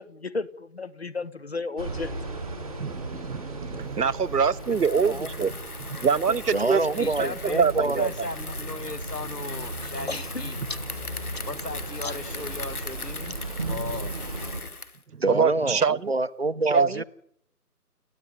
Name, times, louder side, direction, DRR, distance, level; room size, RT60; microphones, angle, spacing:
voice 1, 0.0-2.1 6.3-6.4 10.1-10.3 12.0-12.1 15.6-15.7, left 3 dB, 40° left, 1.0 m, -33 dB
sound 1, 1.8-14.6, right 2 dB, 5° left, 1.2 m, -36 dB
voice 2, 2.8-5.5 6.0-8.1 15.3-16.0 16.7-17.0, right 6 dB, 75° right, 0.9 m, -24 dB
Bicycle, 4.5-15.0, left 3 dB, 65° left, 2.1 m, -40 dB
voice 3, 4.7-5.1 7.0-10.6 11.5-13.4 13.7-14.2, left 3 dB, 85° left, 2.1 m, -37 dB
voice 4, 6.5-8.0 15.2-17.0, right 2 dB, 40° right, 0.8 m, -27 dB
29.5 x 10.0 x 9.9 m
figure-of-eight pair, 165°, 47 cm